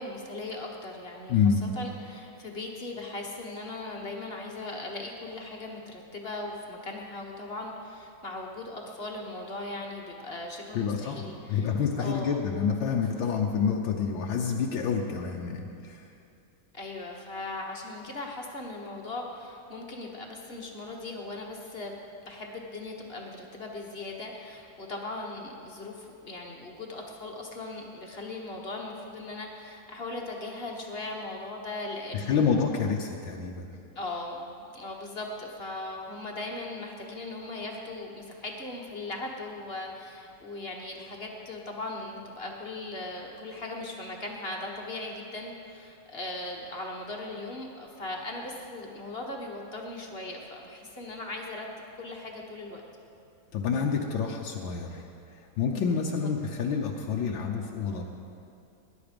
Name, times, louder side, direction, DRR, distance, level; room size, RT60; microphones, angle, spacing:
voice 1, 0.0-11.7 12.0-12.4 16.7-21.9 22.2-32.5 33.9-51.7 52.0-52.8, left 2 dB, 35° left, 0 dB, 1.5 m, -38 dB
voice 2, 1.3-1.6 10.7-16.1 32.1-33.7 53.5-55.1 55.4-58.0, left 6 dB, 80° left, 0 dB, 1.7 m, -28 dB
19.5 x 11.0 x 5.2 m, 2.6 s
omnidirectional pair, 2.1 m